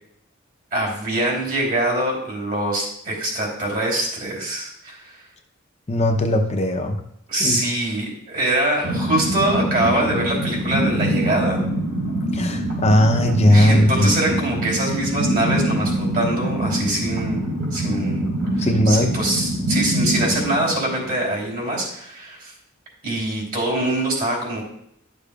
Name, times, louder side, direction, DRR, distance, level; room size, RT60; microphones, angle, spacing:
voice 1, 0.7-5.2 7.3-11.6 13.5-17.4 17.7-22.5 23.0-24.7, right 1 dB, 45° right, -2 dB, 3.3 m, -24 dB
voice 2, 5.9-7.0 7.4-7.6 12.3-14.1 18.6-19.1, left 1 dB, 30° left, 3 dB, 0.6 m, -18 dB
sound 1, 8.8-21.5, right 1 dB, 70° right, 3.2 m, -24 dB
12.0 x 6.7 x 2.4 m, 0.74 s
head